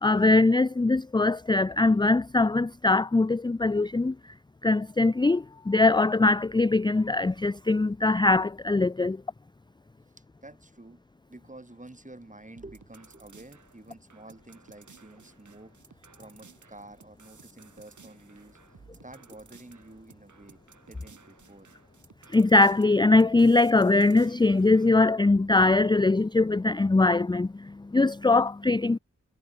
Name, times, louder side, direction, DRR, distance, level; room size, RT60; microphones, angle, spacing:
voice 1, 0.0-4.1 4.6-9.2 22.3-29.0, left 2 dB, 15° left, 0.5 m, -22 dB
voice 2, 10.4-11.0 11.3-20.6 20.9-21.7, right 2 dB, 25° right, 7.2 m, -49 dB
sound 1, 12.6-24.9, right 5 dB, 85° right, 4.4 m, -56 dB
wide cardioid pair, 75°, 29 cm